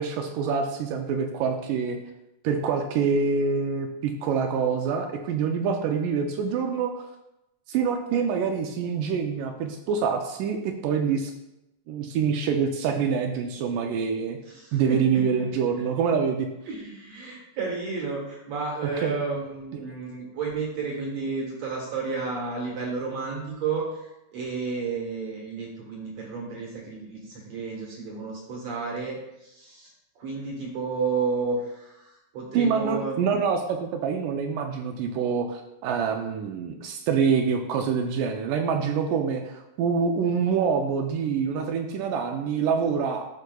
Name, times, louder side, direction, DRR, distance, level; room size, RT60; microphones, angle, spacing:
voice 1, 0.0-2.0 2.4-7.1 7.7-11.3 11.9-14.4 14.7-16.5 19.0-19.2 19.9-20.0 32.5-43.2, right 6 dB, 80° right, 4 dB, 1.9 m, -26 dB
voice 2, 14.5-15.2 16.7-29.2 29.4-29.9 30.2-32.0 32.3-33.4, right 4 dB, 60° right, -2 dB, 2.1 m, -32 dB
13.0 x 4.8 x 2.3 m, 0.90 s
omnidirectional pair, 4.1 m